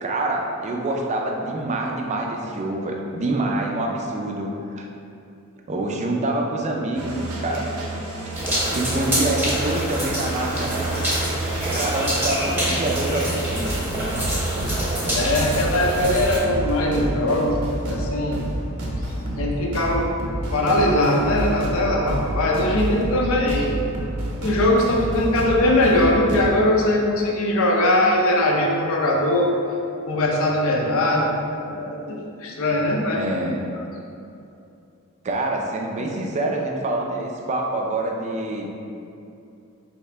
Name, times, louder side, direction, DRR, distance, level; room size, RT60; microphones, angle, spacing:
voice 1, 0.0-4.9 5.7-7.7 8.7-10.9 11.7-13.9 33.2-33.6 35.2-38.7, right 2 dB, 30° right, 1 dB, 0.4 m, -26 dB
sound 1, 6.9-26.5, right 1 dB, 90° right, 0.7 m, -29 dB
sound 2, 8.3-16.4, right 1 dB, 10° right, 0.8 m, -26 dB
voice 2, 15.1-18.4 19.4-20.1 20.5-23.8 24.4-29.5 30.1-33.2, left 1 dB, 65° left, -1 dB, 0.6 m, -21 dB
4.1 x 2.8 x 3.3 m, 2.6 s
head